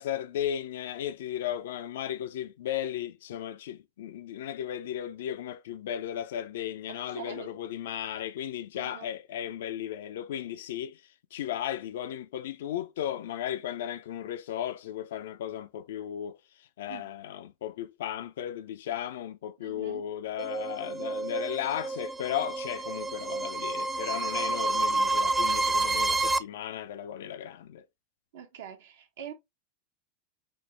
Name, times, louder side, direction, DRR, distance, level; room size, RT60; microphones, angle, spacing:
voice 1, 0.0-11.0 11.3-27.8, left 10 dB, 80° left, 0.3 m, -35 dB
voice 2, 6.9-7.5 8.7-9.1 16.9-17.1 19.6-20.0 28.3-29.3, right 8 dB, 75° right, 1.0 m, -44 dB
sound 1, 20.4-26.4, right 2 dB, 10° right, 0.3 m, -29 dB
4.3 x 2.0 x 3.2 m
hypercardioid pair, 100°, 0 cm